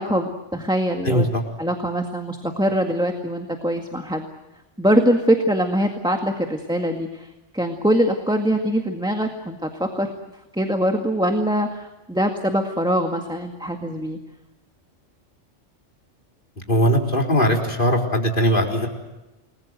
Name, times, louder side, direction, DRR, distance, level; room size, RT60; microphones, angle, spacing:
voice 1, 0.0-1.3 1.6-4.3 4.8-10.1 10.5-14.2, equal, 5° right, 3 dB, 1.9 m, -23 dB
voice 2, 1.0-1.4 16.7-18.9, equal, 45° left, 1 dB, 4.2 m, -19 dB
30.0 x 21.0 x 7.9 m, 1.0 s
omnidirectional pair, 1.2 m